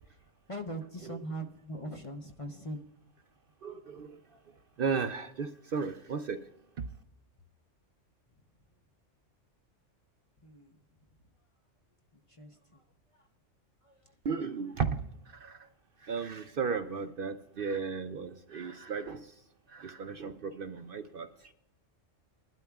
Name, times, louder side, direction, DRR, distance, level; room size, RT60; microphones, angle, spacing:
voice 1, 0.5-2.8 10.4-10.7 12.3-12.8 13.1-13.2 13.8-14.1, right 1 dB, 30° left, 4 dB, 0.8 m, -41 dB
voice 2, 3.6-4.2 4.8-6.4 14.2-15.0 15.3-15.6 16.0-19.3 19.7-21.3, right 5 dB, 55° right, 8 dB, 0.7 m, -35 dB
21.0 x 12.0 x 2.3 m, 0.81 s
omnidirectional pair, 1.3 m